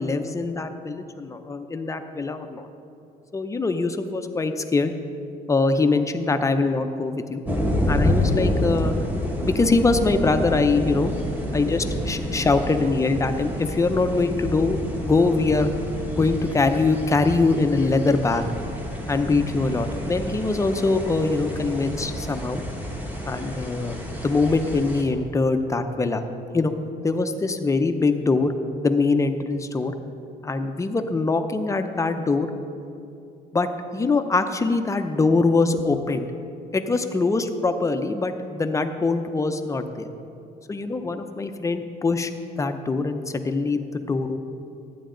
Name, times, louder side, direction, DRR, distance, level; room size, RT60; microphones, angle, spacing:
voice 1, 0.0-2.7 3.3-4.9 5.5-7.4 7.9-8.9 9.3-11.1 11.5-15.7 16.1-18.5 19.1-22.6 23.3-26.2 26.5-26.7 27.0-29.9 30.4-32.5 33.5-36.3 36.7-40.1 40.7-42.3 42.6-44.4, left 3 dB, 20° left, 7 dB, 0.6 m, -23 dB
sound 1, 7.4-25.0, left 1 dB, 10° right, 1.4 m, -29 dB
12.0 x 9.3 x 3.9 m, 2.6 s
cardioid pair, 110°, 17 cm